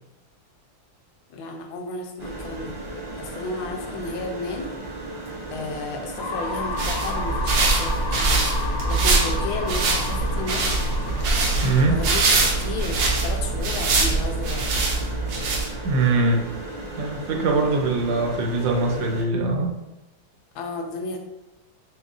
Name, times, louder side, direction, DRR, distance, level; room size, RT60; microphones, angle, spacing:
voice 1, 1.3-2.7 3.2-4.7 5.5-10.7 11.9-15.0 20.5-21.2, left 2 dB, 85° left, 3 dB, 1.5 m, -33 dB
sound 1, 2.2-19.2, right 2 dB, 55° right, 0.5 m, -36 dB
sound 2, 6.2-14.0, left 3 dB, 70° left, 2.3 m, -34 dB
sound 3, 6.5-16.0, right 3 dB, 90° right, 1.6 m, -23 dB
voice 2, 11.6-12.0 15.8-16.5 17.0-19.8, right 3 dB, 75° right, 2 dB, 1.3 m, -22 dB
6.4 x 2.3 x 2.4 m, 0.94 s
omnidirectional pair, 2.2 m